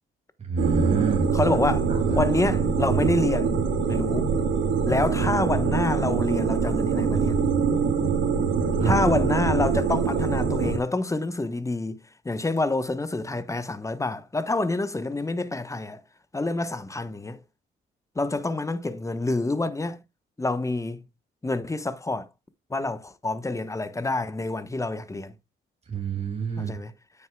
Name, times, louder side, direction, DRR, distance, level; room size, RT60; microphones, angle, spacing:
voice 1, 0.4-1.6 1.9-2.2 8.8-8.9 25.9-26.8, right 4 dB, 30° right, 2.3 m, -28 dB
sound 1, 0.6-10.8, right 5 dB, 70° right, 2.0 m, -24 dB
voice 2, 1.3-3.5 3.8-4.3 4.9-7.4 8.8-12.0 12.2-16.0 16.3-17.4 18.1-20.0 20.4-21.0 21.4-22.3 22.7-25.3 26.6-26.9, left 2 dB, 15° left, 1.0 m, -27 dB
9.2 x 7.9 x 2.3 m
cardioid pair, 90°, 20 cm